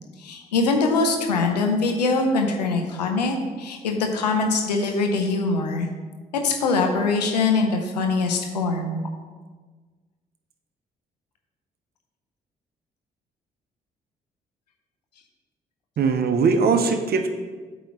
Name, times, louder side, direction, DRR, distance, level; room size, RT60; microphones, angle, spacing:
voice 1, 0.2-5.9 6.4-9.0, left 3 dB, 90° left, 4 dB, 0.7 m, -23 dB
voice 2, 16.0-17.3, right 5 dB, 50° right, 7 dB, 0.8 m, -20 dB
8.5 x 3.0 x 5.8 m, 1.4 s
hypercardioid pair, 45°, 20 cm